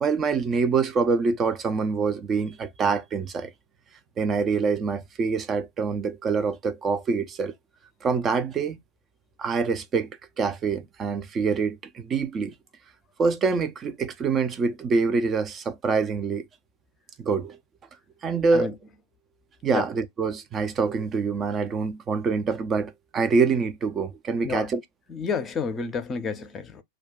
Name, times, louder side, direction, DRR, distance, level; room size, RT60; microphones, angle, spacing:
voice 1, 0.0-3.5 4.2-7.5 8.0-8.8 9.4-10.1 10.4-12.5 13.2-16.4 17.2-17.6 18.2-18.7 19.6-24.8, right 5 dB, 25° right, 0.5 m, -25 dB
voice 2, 25.1-26.8, left 5 dB, 20° left, 0.6 m, -30 dB
2.3 x 2.3 x 3.6 m
figure-of-eight pair, 90°, 0 cm